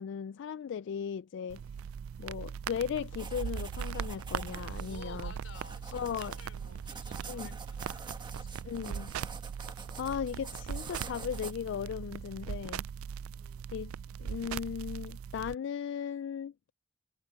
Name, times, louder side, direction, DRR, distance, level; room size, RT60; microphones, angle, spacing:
voice 1, 0.0-1.6 2.2-5.3 5.9-6.3 7.3-7.6 8.6-9.1 10.0-12.8 13.7-13.9 14.2-16.5, left 7 dB, 60° left, 0.3 m, -37 dB
sound 1, 1.5-15.5, right 7 dB, 85° right, 0.4 m, -40 dB
sound 2, 3.1-11.5, right 4 dB, 20° right, 1.3 m, -47 dB
voice 2, 4.9-8.6 13.3-13.7, left 4 dB, 75° left, 4.8 m, -53 dB
head